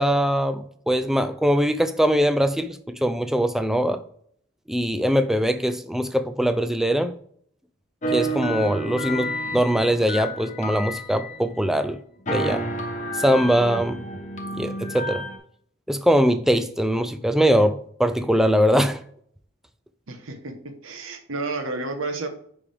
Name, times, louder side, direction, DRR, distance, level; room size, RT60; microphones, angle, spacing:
voice 1, 0.0-4.0 4.7-7.1 8.1-12.0 12.3-12.6 13.1-14.1 14.6-15.2 15.9-19.0, equal, ahead, 0.3 m, -22 dB
sound 1, 8.0-11.8 12.3-15.4, right 1 dB, 35° left, 0.9 m, -30 dB
voice 2, 20.1-22.3, right 3 dB, 85° right, 1.1 m, -31 dB
9.6 x 3.6 x 3.4 m
head